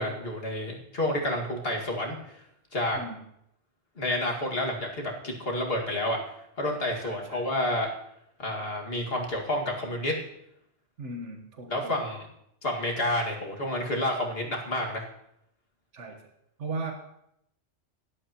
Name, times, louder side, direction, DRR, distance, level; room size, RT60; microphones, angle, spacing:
voice 1, 0.0-2.2 2.7-3.0 4.0-6.2 6.6-7.9 8.4-10.2 11.7-12.2 12.6-15.0, left 1 dB, 55° left, -1 dB, 2.3 m, -29 dB
voice 2, 2.9-3.2 7.0-7.5 11.0-12.0 15.9-16.2 16.6-16.9, right 3 dB, 85° right, 2 dB, 1.6 m, -37 dB
17.5 x 11.5 x 3.0 m, 0.77 s
omnidirectional pair, 1.2 m